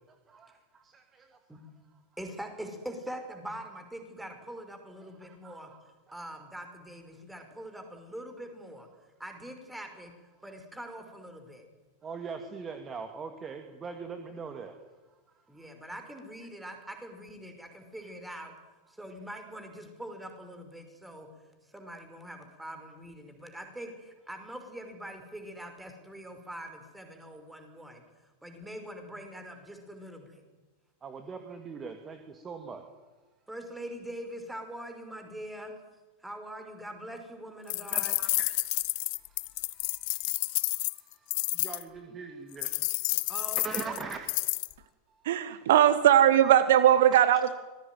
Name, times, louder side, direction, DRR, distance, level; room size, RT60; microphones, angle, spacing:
voice 1, 0.1-1.4 5.0-5.6 12.0-14.8 15.1-15.7 31.0-32.9 37.8-43.3 43.6-44.2 44.8-45.2, right 5 dB, 20° right, 6 dB, 2.6 m, -43 dB
voice 2, 2.2-5.7 6.1-8.9 9.2-10.1 10.4-11.7 15.5-18.5 18.9-21.3 21.7-28.0 28.4-30.4 33.5-35.7 36.2-38.1 43.3-44.1, right 1 dB, 5° right, 5 dB, 5.5 m, -43 dB
sound 1, 37.7-41.8 42.6-44.7, left 25 dB, 45° left, 1.0 m, -30 dB
voice 3, 45.2-47.5, right 11 dB, 55° right, 12 dB, 1.5 m, -20 dB
25.5 x 21.0 x 9.4 m, 1.2 s
figure-of-eight pair, 90°, 0 cm